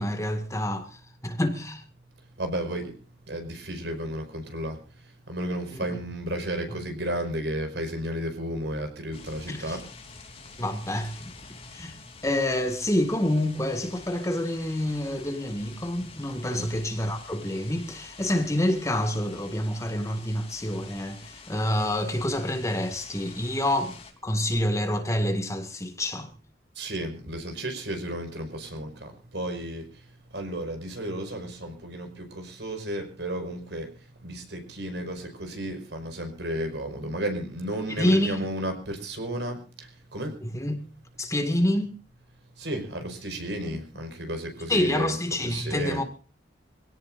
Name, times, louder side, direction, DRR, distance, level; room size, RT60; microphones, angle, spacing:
voice 1, 0.0-1.8 5.7-5.9 9.5-9.8 10.6-11.3 11.7-12.0 12.2-26.3 38.0-38.5 40.5-40.8 41.2-41.9 43.7-43.8 44.7-46.0, left 1 dB, 15° left, 1.9 m, -27 dB
voice 2, 2.2-2.9 3.3-10.6 16.5-16.7 26.8-40.4 41.2-41.3 42.6-45.2 45.4-46.1, right 1 dB, 75° right, 5.3 m, -33 dB
sound 1, 9.1-24.1, left 4 dB, 35° left, 3.4 m, -47 dB
25.5 x 17.0 x 2.6 m
head